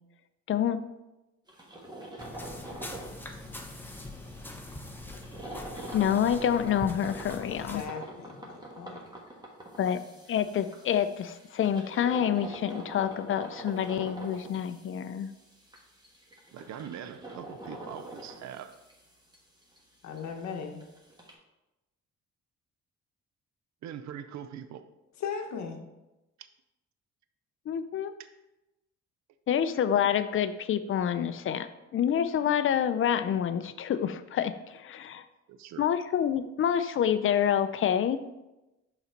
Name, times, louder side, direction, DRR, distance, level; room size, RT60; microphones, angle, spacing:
voice 1, 0.5-0.8 5.9-7.8 9.8-10.0 10.3-15.3 27.7-28.1 29.5-31.7 31.9-35.2 35.8-38.2, left 9 dB, 45° left, 12 dB, 0.5 m, -27 dB
sound 1, 1.5-19.4 19.6-19.8 20.2-20.3 20.5-20.6 20.8-21.3, right 1 dB, 15° right, 1.4 m, -45 dB
sound 2, 2.2-7.9, left 1 dB, 5° left, 0.8 m, -43 dB
voice 2, 7.4-9.1 20.0-20.8 25.2-25.8, left 6 dB, 65° left, 4 dB, 0.9 m, -38 dB
voice 3, 16.5-18.7 23.8-24.8 26.4-26.5 35.5-35.9, right 9 dB, 65° right, 11 dB, 0.5 m, -42 dB
5.6 x 4.1 x 4.4 m, 1.0 s
cardioid pair, 90°, 30 cm